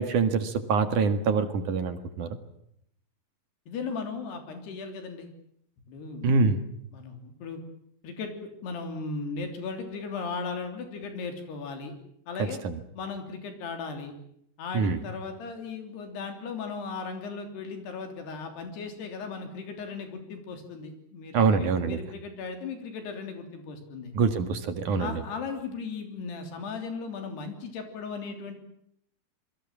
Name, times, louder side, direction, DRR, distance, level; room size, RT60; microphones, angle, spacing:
voice 1, 0.0-2.3 6.2-6.6 12.6-12.7 14.7-15.0 21.3-22.0 24.1-25.2, right 5 dB, 55° right, 8 dB, 3.0 m, -25 dB
voice 2, 3.7-5.3 5.9-6.4 6.9-7.6 8.0-8.3 8.6-12.0 12.3-12.6 12.9-14.1 14.6-24.1 25.0-28.6, left 4 dB, 85° left, 5 dB, 5.3 m, -37 dB
27.5 x 22.0 x 7.4 m, 0.72 s
omnidirectional pair, 4.6 m